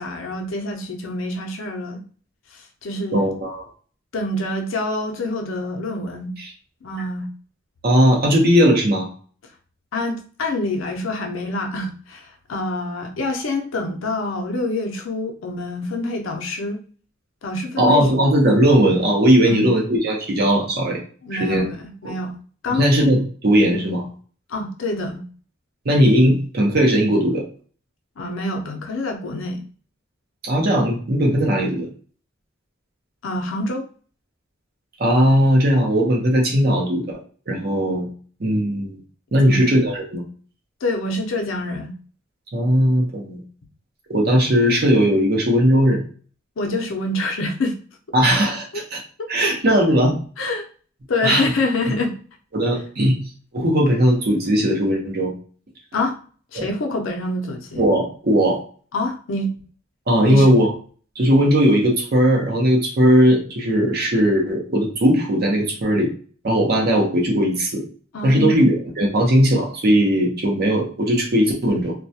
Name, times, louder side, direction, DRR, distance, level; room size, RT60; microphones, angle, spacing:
voice 1, 0.0-2.0 2.5-3.3 4.1-6.3 6.8-7.3 9.9-16.8 17.4-18.0 19.5-19.7 21.2-22.3 22.6-22.9 24.5-25.2 28.2-29.6 33.2-33.8 39.4-39.8 40.8-41.9 46.6-47.8 48.7-48.8 49.2-49.8 50.4-50.7 51.1-52.2 55.9-56.2 56.5-57.8 58.9-59.5 60.2-60.5 68.1-68.5, left 2 dB, 75° left, 3 dB, 0.5 m, -26 dB
voice 2, 3.1-3.6 6.4-6.5 7.8-9.1 17.8-21.0 21.3-21.7 22.8-24.1 25.8-27.4 30.4-31.9 35.0-37.2 37.5-38.1 38.4-39.0 39.3-40.2 42.5-43.4 44.1-46.0 48.1-49.0 49.3-50.1 51.2-51.5 52.5-53.2 53.5-55.3 56.6-56.7 57.8-58.6 60.1-60.7 61.2-66.1 66.4-67.8 68.2-71.9, equal, 50° right, 0 dB, 0.7 m, -18 dB
2.3 x 2.1 x 2.7 m, 0.42 s
head